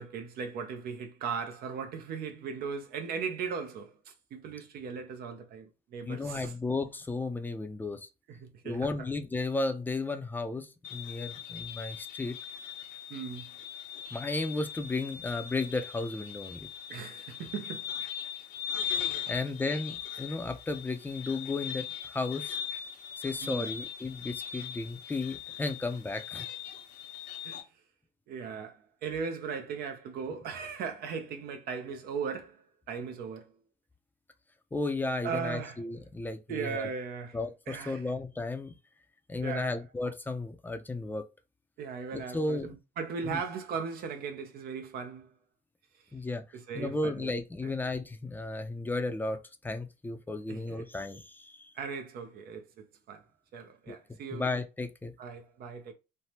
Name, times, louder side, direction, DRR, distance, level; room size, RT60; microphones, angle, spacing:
voice 1, 0.0-6.5 8.3-8.9 13.1-13.5 16.9-17.9 23.4-23.7 27.4-27.6 28.3-33.5 35.2-35.9 36.5-37.4 37.7-38.1 39.4-39.8 41.8-45.3 45.9-46.0 46.5-47.3 47.6-47.7 50.5-50.9 51.8-53.3 53.5-54.5 55.2-55.9, right 6 dB, 65° right, 0.6 m, -38 dB
voice 2, 6.1-8.1 8.6-12.4 14.1-16.7 19.3-22.5 23.2-26.5 34.7-36.9 37.3-38.7 39.3-41.2 42.1-42.7 43.2-43.4 46.1-46.4 46.7-49.4 49.6-51.7 53.9-54.0 54.3-55.1, left 3 dB, 10° left, 0.4 m, -34 dB
sound 1, 10.8-27.6, left 9 dB, 90° left, 0.9 m, -40 dB
3.3 x 2.1 x 2.8 m
cardioid pair, 110°, 17 cm